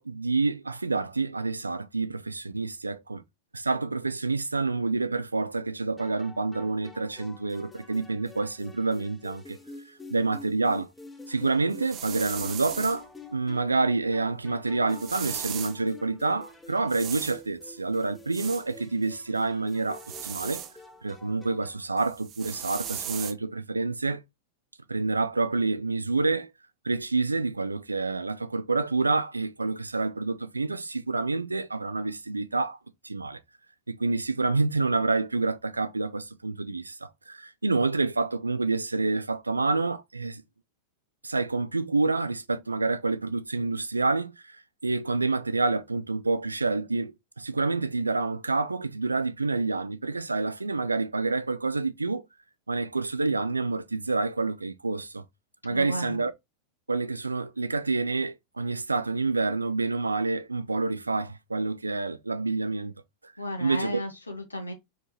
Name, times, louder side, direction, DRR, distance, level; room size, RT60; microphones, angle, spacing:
voice 1, 0.0-3.2 3.5-9.6 9.9-10.9 11.3-20.6 21.0-24.2 24.9-26.5 26.8-32.8 33.0-33.4 33.9-40.4 41.2-52.3 52.7-55.2 55.6-56.3 56.9-62.9 63.2-63.3 63.6-64.0, right 3 dB, 80° right, 0.4 m, -28 dB
sound 1, 6.0-21.9, left 2 dB, 10° left, 0.9 m, -48 dB
sound 2, 11.7-13.0 14.9-15.8 16.9-17.4 18.3-18.7 19.9-20.7 22.0-23.3, right 10 dB, 35° right, 0.7 m, -37 dB
voice 2, 55.7-56.2 63.4-64.7, left 1 dB, 80° left, 1.2 m, -34 dB
4.7 x 3.7 x 3.0 m
figure-of-eight pair, 90°, 0 cm